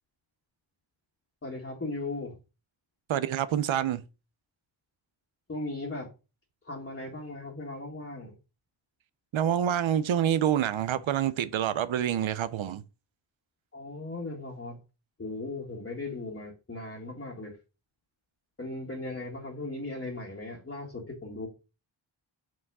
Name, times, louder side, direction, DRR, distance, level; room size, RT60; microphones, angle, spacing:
voice 1, 1.4-2.4 5.5-6.1 6.6-8.4 13.7-14.8 15.2-17.6 18.6-21.5, left 2 dB, 25° left, 1.8 m, -37 dB
voice 2, 3.1-4.0 9.3-12.8, right 10 dB, 75° right, 0.7 m, -27 dB
6.2 x 4.8 x 4.8 m
wide cardioid pair, 105°, 47 cm